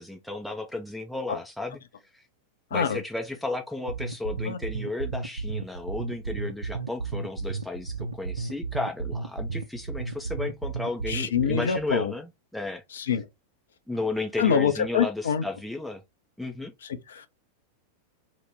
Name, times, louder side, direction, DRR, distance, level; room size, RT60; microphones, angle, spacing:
voice 1, 0.0-1.8 2.1-2.3 2.7-12.8 13.9-16.0 16.4-16.7, left 2 dB, ahead, 0.4 m, -33 dB
sound 1, 3.9-11.9, right 4 dB, 75° right, 0.3 m, -33 dB
voice 2, 11.1-12.1 12.9-13.2 14.4-15.4 16.8-17.3, left 7 dB, 65° left, 0.5 m, -26 dB
2.9 x 2.1 x 3.5 m
figure-of-eight pair, 90°, 0 cm